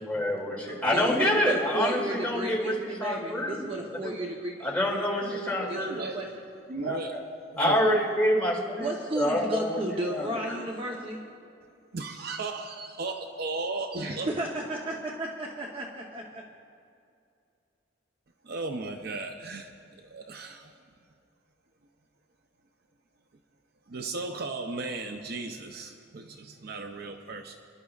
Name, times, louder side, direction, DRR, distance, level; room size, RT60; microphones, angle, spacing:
voice 1, 0.1-3.6 4.6-6.0 6.7-7.2 7.6-8.9 9.2-9.8 10.1-10.3, left 1 dB, 10° left, -4 dB, 2.5 m, -27 dB
voice 2, 0.7-4.7 4.9-5.2 5.6-6.4 8.8-11.2 13.9-16.4, right 1 dB, 30° right, -1 dB, 0.8 m, -34 dB
voice 3, 5.7-6.2 6.7-7.2 7.5-8.1 11.9-14.3 18.4-19.7 20.1-20.7 23.9-27.6, right 3 dB, 55° right, 5 dB, 0.6 m, -34 dB
29.5 x 11.5 x 2.4 m, 2.4 s
head